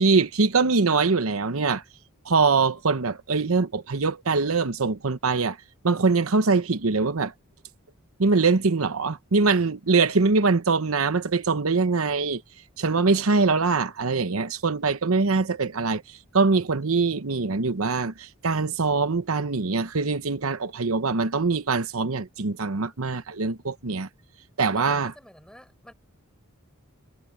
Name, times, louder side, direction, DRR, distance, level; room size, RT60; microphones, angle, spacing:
voice 1, 0.0-1.8 2.2-5.6 5.8-7.3 8.2-12.4 12.8-24.1 24.6-25.1, right 4 dB, 80° right, 0.9 m, -23 dB
voice 2, 24.7-25.9, equal, 5° left, 6.3 m, -48 dB
head